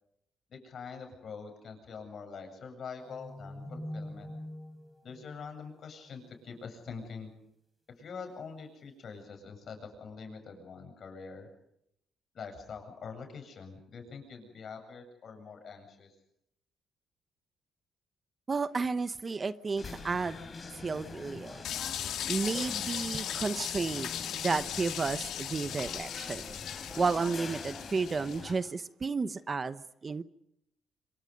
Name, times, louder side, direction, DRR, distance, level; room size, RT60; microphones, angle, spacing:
voice 1, 0.5-4.3 5.0-7.3 7.9-11.5 12.3-16.1, left 5 dB, 55° left, 5 dB, 7.9 m, -45 dB
sound 1, 3.0-6.4, left 1 dB, 5° right, 4.5 m, -44 dB
voice 2, 18.5-20.4 20.8-21.6 22.3-26.5 26.9-30.2, right 4 dB, 35° right, 13 dB, 1.0 m, -32 dB
sound 2, 19.8-28.5, left 4 dB, 35° left, 5.8 m, -44 dB
sound 3, 21.6-28.5, left 10 dB, 80° left, 1.7 m, -38 dB
26.5 x 25.0 x 5.4 m, 0.77 s
cardioid pair, 90°, 0 cm